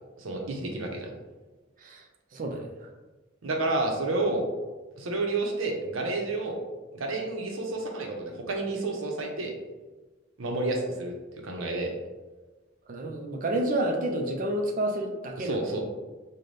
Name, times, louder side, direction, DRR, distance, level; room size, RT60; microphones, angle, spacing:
voice 1, 0.2-1.1 3.4-4.4 5.0-6.6 6.9-9.5 10.4-11.1 11.4-11.9 15.4-15.8, right 2 dB, 90° right, 1 dB, 0.7 m, -30 dB
voice 2, 2.3-2.9 12.9-15.6, right 1 dB, 45° right, 2 dB, 0.4 m, -29 dB
3.9 x 2.1 x 3.2 m, 1.2 s
head